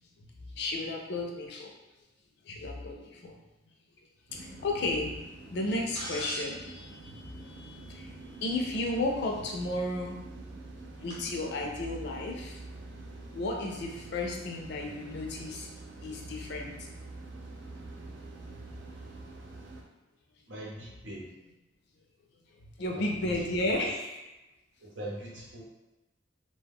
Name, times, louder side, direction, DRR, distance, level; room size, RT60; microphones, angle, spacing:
voice 1, 0.4-1.7 2.4-3.4 4.3-5.1 5.5-6.7 7.9-10.2 10.9-12.6 13.3-15.7 16.0-16.9 22.8-24.2, left 2 dB, 60° left, 1 dB, 0.5 m, -33 dB
sound 1, 4.3-19.8, right 2 dB, 65° right, 0.4 m, -46 dB
sound 2, 5.9-8.3 9.8-9.9 11.1-11.2, equal, 25° right, 0.7 m, -43 dB
voice 2, 20.5-21.3 22.9-23.1 23.7-23.9 25.0-25.6, right 1 dB, 90° right, -5 dB, 0.8 m, -41 dB
2.2 x 2.1 x 3.4 m, 1.0 s
head